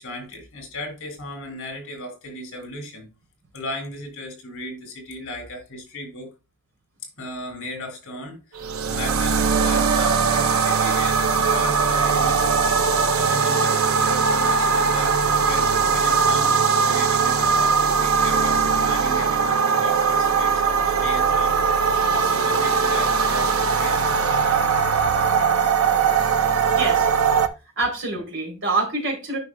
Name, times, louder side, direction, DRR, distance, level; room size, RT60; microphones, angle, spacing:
voice 1, 0.0-3.1 3.5-6.3 7.2-12.5 13.0-24.1, left 1 dB, 60° left, 3.2 m, -36 dB
sound 1, 8.5-27.5, right 5 dB, 75° right, 0.7 m, -20 dB
voice 2, 26.7-27.1 27.8-29.4, right 3 dB, 55° right, 3.3 m, -26 dB
9.3 x 6.0 x 2.3 m
head